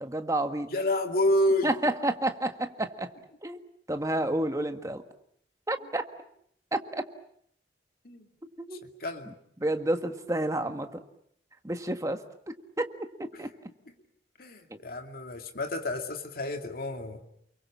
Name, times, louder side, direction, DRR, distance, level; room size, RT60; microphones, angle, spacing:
voice 1, 0.0-0.7 1.6-3.1 3.4-3.6 3.9-5.0 5.7-6.0 6.7-7.0 8.6-8.8 9.3-9.4 9.6-11.0 11.6-12.2 12.5-12.9 13.2-13.5, right 1 dB, 20° right, 7 dB, 1.6 m, -30 dB
voice 2, 0.7-1.7 8.0-8.3 9.0-9.3 14.4-17.2, left 1 dB, 55° left, 4 dB, 2.4 m, -29 dB
29.5 x 22.5 x 7.4 m, 0.69 s
head